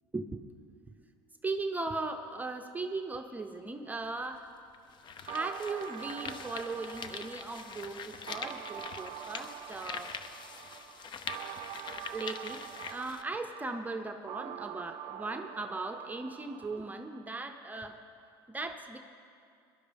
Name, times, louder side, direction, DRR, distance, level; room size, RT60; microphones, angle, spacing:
voice 1, 0.1-0.5 1.4-4.5 5.2-10.1 12.1-12.6 12.9-18.0 18.5-19.0, right 3 dB, 15° right, 5 dB, 0.7 m, -38 dB
sound 1, 4.0-4.1 4.7-13.2, left 6 dB, 40° left, 0.7 m, -44 dB
sound 2, 5.3-17.3, right 11 dB, 55° right, 0.5 m, -45 dB
18.5 x 11.5 x 3.5 m, 2.4 s
supercardioid pair, 90°, 12 cm